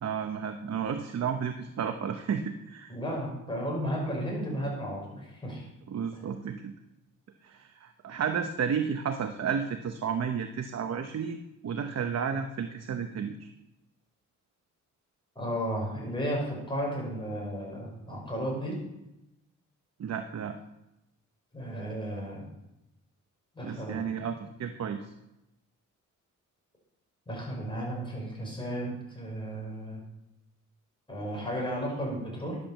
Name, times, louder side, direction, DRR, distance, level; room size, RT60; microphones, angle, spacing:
voice 1, 0.0-2.9 5.9-6.7 7.4-13.5 20.0-20.6 23.6-25.1, right 7 dB, 55° right, 7 dB, 0.9 m, -32 dB
voice 2, 2.9-5.7 15.4-18.8 21.5-22.5 23.5-24.3 27.3-30.0 31.1-32.6, equal, 15° left, -2 dB, 5.8 m, -34 dB
10.5 x 8.5 x 7.2 m, 0.91 s
cardioid pair, 120°, 32 cm